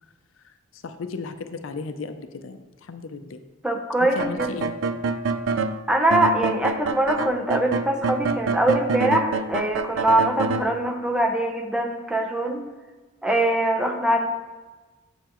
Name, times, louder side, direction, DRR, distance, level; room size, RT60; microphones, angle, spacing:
voice 1, 0.4-3.4 4.0-4.7, left 4 dB, 75° left, 9 dB, 0.5 m, -35 dB
voice 2, 3.6-4.5 5.9-12.6 13.2-14.3, right 1 dB, 5° right, 2 dB, 0.6 m, -23 dB
sound 1, 4.2-5.8 6.1-10.6, right 4 dB, 70° right, 0.4 m, -26 dB
7.9 x 6.8 x 3.0 m, 1.3 s
head